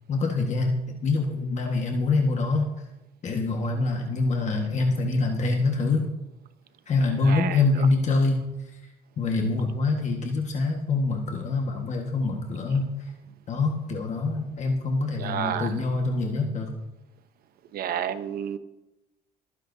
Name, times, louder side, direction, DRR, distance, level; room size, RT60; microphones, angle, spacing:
voice 1, 0.1-2.7 3.2-6.1 6.9-8.4 9.2-12.9 13.5-16.7, left 3 dB, 45° left, 1 dB, 1.6 m, -25 dB
voice 2, 7.2-7.6 15.2-15.7 17.7-18.6, right 9 dB, 65° right, 11 dB, 0.9 m, -30 dB
23.0 x 9.9 x 2.8 m, 1.0 s
cardioid pair, 110°, 17 cm